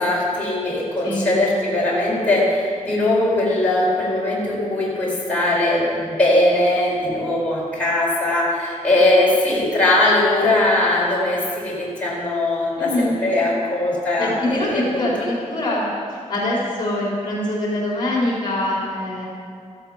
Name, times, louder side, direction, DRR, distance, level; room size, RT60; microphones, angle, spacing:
voice 1, 0.0-15.1, left 1 dB, 10° left, -7 dB, 4.4 m, -20 dB
voice 2, 12.8-13.2 14.2-19.2, left 1 dB, 35° left, -4 dB, 4.2 m, -24 dB
16.5 x 14.5 x 5.8 m, 2.2 s
wide cardioid pair, 170°, 13 cm